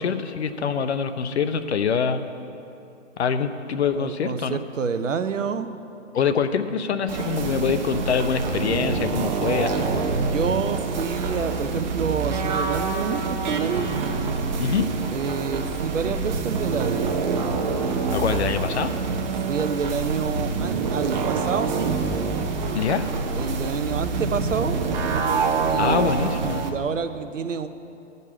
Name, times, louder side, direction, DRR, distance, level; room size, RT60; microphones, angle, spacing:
voice 1, 0.0-2.3 3.2-4.6 6.1-9.9 14.6-14.9 18.1-18.9 22.7-23.0 25.8-26.6, left 6 dB, 60° left, 10 dB, 0.8 m, -24 dB
voice 2, 4.0-5.7 10.2-13.9 15.1-17.1 19.5-22.0 23.4-24.8 25.7-26.0 26.4-27.7, right 6 dB, 80° right, 10 dB, 0.8 m, -28 dB
sound 1, 7.1-26.7, right 4 dB, 35° right, 0.9 m, -26 dB
12.5 x 5.4 x 8.5 m, 2.7 s
hypercardioid pair, 145°, 38 cm